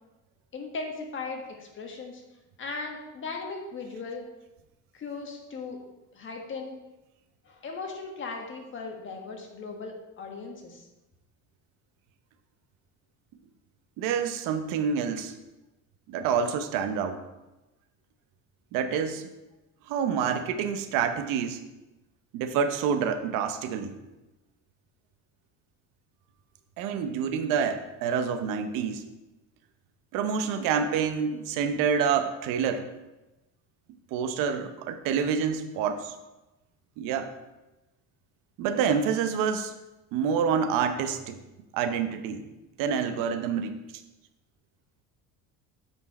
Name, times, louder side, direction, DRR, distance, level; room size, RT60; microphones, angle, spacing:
voice 1, 0.5-2.2 2.6-4.3 4.9-5.8 6.1-6.8 7.4-10.8, left 4 dB, 35° left, 2 dB, 1.4 m, -38 dB
voice 2, 14.0-15.3 16.1-17.2 18.7-19.3 19.9-21.6 22.3-24.0 26.8-29.0 30.1-32.9 34.1-36.1 37.0-37.3 38.6-39.7 40.1-41.4 41.7-42.4 42.8-43.7, right 7 dB, 75° right, 9 dB, 0.8 m, -27 dB
8.8 x 4.6 x 4.2 m, 1.0 s
cardioid pair, 125°, 33 cm